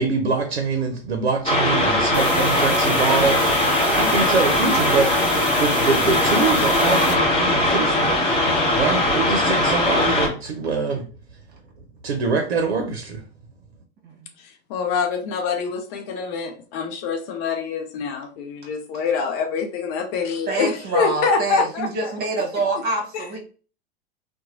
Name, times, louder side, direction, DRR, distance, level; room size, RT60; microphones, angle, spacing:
voice 1, 0.0-11.1 12.0-13.2, right 4 dB, 80° right, 0.6 m, -24 dB
sound 1, 1.5-10.3, left 1 dB, 20° left, 1.0 m, -20 dB
sound 2, 2.1-7.1, right 1 dB, 5° right, 0.9 m, -33 dB
voice 2, 2.2-2.7 14.0-14.3 20.5-23.4, right 2 dB, 30° right, 1.3 m, -26 dB
voice 3, 14.4-22.1 23.1-23.3, left 5 dB, 45° left, 0.6 m, -25 dB
2.9 x 2.2 x 2.5 m
hypercardioid pair, 95°, 31 cm